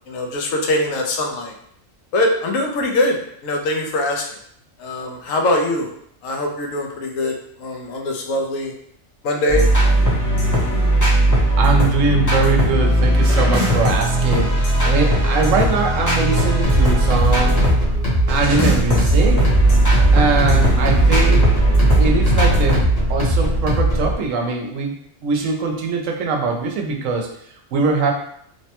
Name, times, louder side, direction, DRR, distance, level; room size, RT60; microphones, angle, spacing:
voice 1, 0.1-1.5 2.1-4.2 4.8-5.9 6.2-8.7 9.2-9.7, left 1 dB, 80° left, 2 dB, 1.0 m, -22 dB
sound 1, 9.5-17.8 18.3-22.8, right 1 dB, 20° left, 0.5 m, -17 dB
voice 2, 11.6-14.6 14.8-17.6 18.3-19.5 20.1-21.5 22.0-22.8 23.1-25.0 25.2-27.3 27.7-28.1, right 4 dB, 75° right, 2 dB, 0.9 m, -21 dB
Through the Caves, 16.6-24.1, right 1 dB, 45° left, 1.1 m, -19 dB
3.1 x 2.1 x 2.8 m, 0.69 s
omnidirectional pair, 1.4 m